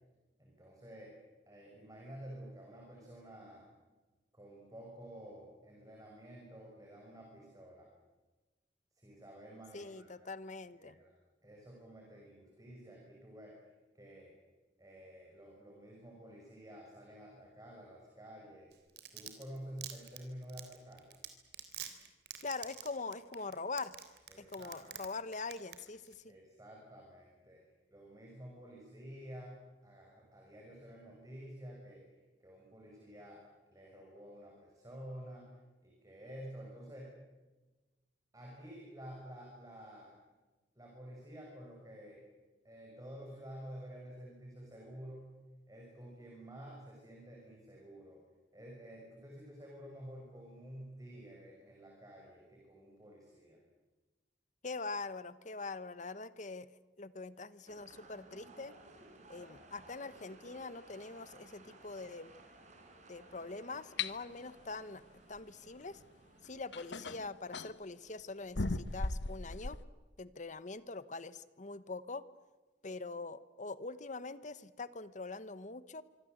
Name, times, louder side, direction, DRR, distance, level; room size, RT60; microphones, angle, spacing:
voice 1, 0.4-1.1 1.5-3.7 4.3-7.9 8.9-10.1 10.7-11.1 11.4-13.6 13.9-14.3 14.8-18.7 19.1-21.1 24.3-24.9 26.3-27.6 27.9-29.6 29.8-32.0 32.4-35.5 35.8-37.2 38.3-40.2 40.8-42.2 42.6-45.3 45.7-48.2 48.5-53.6, equal, 20° right, -1 dB, 6.0 m, -51 dB
voice 2, 9.7-11.0 22.4-23.9 24.4-26.3 54.6-56.7 57.0-58.7 59.3-62.3 63.1-65.0 65.3-66.0 66.4-69.8 70.2-72.2 72.8-76.0, left 3 dB, 45° left, 15 dB, 1.1 m, -43 dB
Domestic sounds home sounds, 18.7-25.1 25.3-25.8 26.1-26.2, right 11 dB, 65° right, 3.6 m, -45 dB
sound 1, 57.7-67.1, right 2 dB, 40° right, 4.7 m, -58 dB
sound 2, 64.0-64.1 66.0-66.1 66.7-67.8 68.6-69.8, left 3 dB, 75° left, 1.2 m, -37 dB
25.5 x 25.0 x 7.9 m, 1.2 s
head